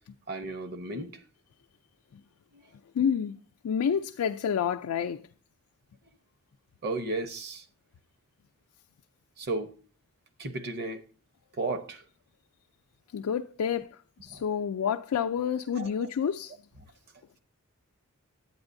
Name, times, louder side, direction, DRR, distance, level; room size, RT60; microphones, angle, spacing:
voice 1, 0.3-1.2 2.5-2.6 6.8-7.6 9.4-9.8 10.4-11.0 11.6-12.0 14.3-14.4 15.7-16.1, right 2 dB, 45° right, 0.8 m, -34 dB
voice 2, 3.0-3.4 3.6-5.2 13.1-13.9 14.2-16.5, left 7 dB, 80° left, 0.4 m, -28 dB
9.6 x 8.8 x 2.6 m
head